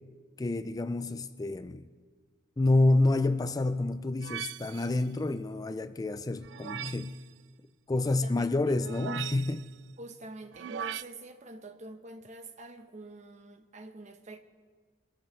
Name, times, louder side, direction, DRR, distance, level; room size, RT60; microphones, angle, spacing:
voice 1, 0.4-1.9 2.6-7.2 7.9-9.7, left 2 dB, 20° left, 0.4 m, -28 dB
sound 1, 4.2-5.0 6.4-7.2 8.8-9.7 10.5-11.0, right 10 dB, 70° right, 0.3 m, -39 dB
voice 2, 7.9-8.5 10.0-14.4, right 2 dB, 40° right, 1.0 m, -46 dB
23.5 x 14.0 x 3.2 m
head